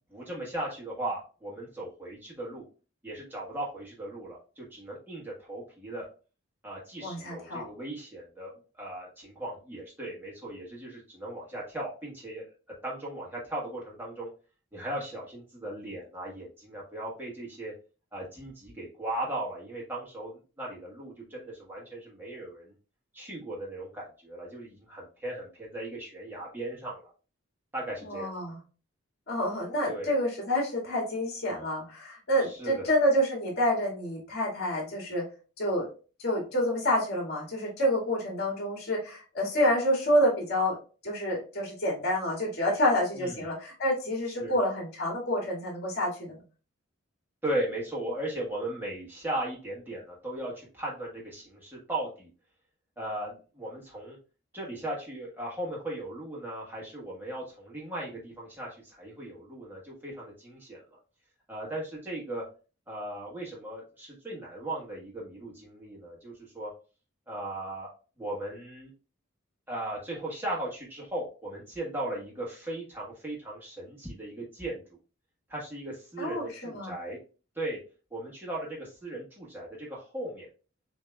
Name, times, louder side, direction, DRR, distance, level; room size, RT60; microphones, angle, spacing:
voice 1, 0.1-2.6 3.0-6.1 6.6-12.5 12.8-14.3 14.7-17.7 18.1-22.7 23.1-27.1 27.7-28.3 29.9-30.1 32.4-32.9 43.1-43.4 44.4-44.5 47.4-52.3 53.0-54.2 54.5-61.0 61.5-62.4 62.9-66.7 67.3-67.9 68.2-68.9 69.7-75.0 75.5-77.2 77.5-77.8 78.1-80.5, right 1 dB, 10° right, -5 dB, 1.2 m, -37 dB
voice 2, 7.0-7.6 28.1-28.6 29.3-35.2 35.6-35.9 36.2-40.8 41.0-46.4 76.2-76.9, equal, 50° left, -2 dB, 1.8 m, -28 dB
6.7 x 2.8 x 2.2 m, 0.35 s
head